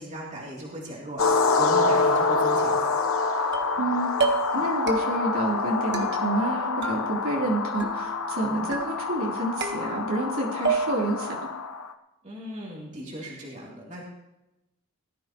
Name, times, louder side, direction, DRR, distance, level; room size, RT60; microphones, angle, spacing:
voice 1, 0.0-2.9 12.2-14.0, right 1 dB, 35° right, -4 dB, 3.2 m, -37 dB
sound 1, 1.2-11.9, left 4 dB, 70° left, 1.1 m, -26 dB
sound 2, 3.5-3.9 4.2-4.6 4.9-5.4 5.9-6.5 6.8-7.5 7.8-8.3 8.7-9.2 9.6-10.3 10.6-11.2, right 4 dB, 50° right, 1.5 m, -31 dB
voice 2, 3.8-4.1 4.5-11.4, right 2 dB, 70° right, -3 dB, 3.7 m, -29 dB
19.0 x 14.0 x 3.1 m, 0.94 s
head